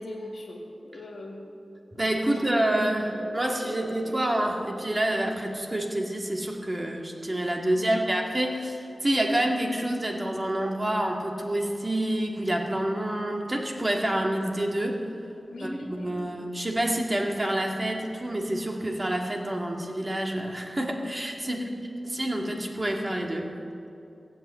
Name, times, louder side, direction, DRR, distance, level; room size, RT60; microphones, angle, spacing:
voice 1, 0.0-1.5 1.9-2.9 7.7-8.0 15.5-16.1 21.4-21.9, left 1 dB, 90° left, -1 dB, 1.9 m, -39 dB
sound 1, 1.8-6.0, right 3 dB, 70° right, 0.7 m, -44 dB
voice 2, 2.0-15.0 15.6-21.6 22.1-23.5, right 1 dB, 30° right, 1 dB, 1.9 m, -28 dB
16.0 x 8.1 x 8.0 m, 2.6 s
wide cardioid pair, 60°, 0 cm